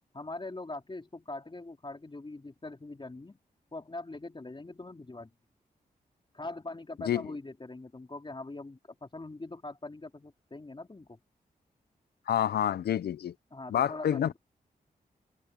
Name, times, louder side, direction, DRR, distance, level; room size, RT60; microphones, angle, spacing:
voice 1, 0.1-3.4 3.7-5.3 6.3-11.2 13.5-14.4, left 2 dB, 30° left, 3.2 m, -42 dB
voice 2, 12.3-13.3 13.7-14.4, left 10 dB, 85° left, 0.7 m, -28 dB
open air
cardioid pair, 50°, 16 cm